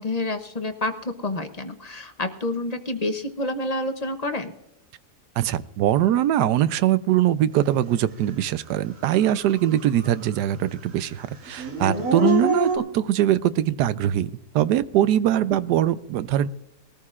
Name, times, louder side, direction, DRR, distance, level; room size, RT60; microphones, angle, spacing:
voice 1, 0.0-4.5 12.8-12.9, left 2 dB, 45° left, 8 dB, 0.5 m, -28 dB
voice 2, 5.4-16.5, right 11 dB, 80° right, 15 dB, 1.2 m, -22 dB
Dog / Siren, 8.4-8.5 9.0-10.4 10.7-12.8, equal, 60° right, 2.2 m, -26 dB
21.0 x 14.0 x 2.4 m, 0.87 s
omnidirectional pair, 1.8 m